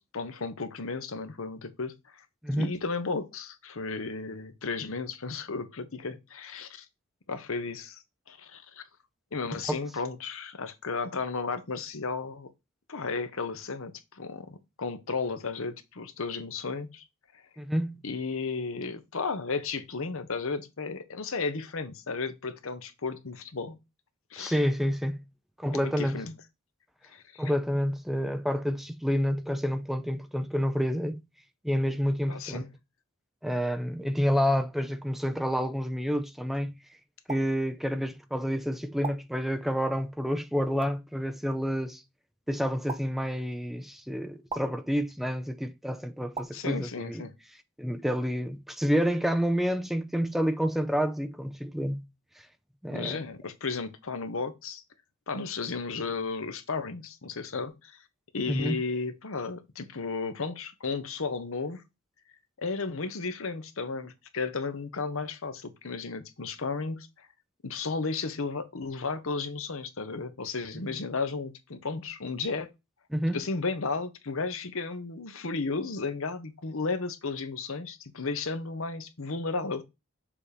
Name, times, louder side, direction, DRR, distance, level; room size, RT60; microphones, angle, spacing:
voice 1, 0.0-2.2 2.6-6.9 7.3-8.0 8.3-8.8 9.3-12.5 12.9-17.0 18.0-23.8 24.3-24.6 25.7-26.3 27.0-27.4 32.3-32.7 46.5-47.3 52.9-54.8 55.3-58.0 58.3-61.8 62.6-67.3 67.6-72.7 73.3-79.8, left 4 dB, 70° left, 0.9 m, -34 dB
voice 2, 17.6-17.9 24.4-25.2 25.6-26.2 27.4-31.2 31.6-32.6 33.4-36.7 37.3-42.0 42.5-47.3 47.8-52.0 52.8-53.2 58.5-58.8 73.1-73.4, equal, ahead, 0.6 m, -29 dB
sound 1, 37.3-37.4 39.0-39.2 40.8-40.9 42.9-43.0 44.5-44.6 46.3-46.5, right 4 dB, 25° right, 0.9 m, -35 dB
7.0 x 2.9 x 5.0 m
head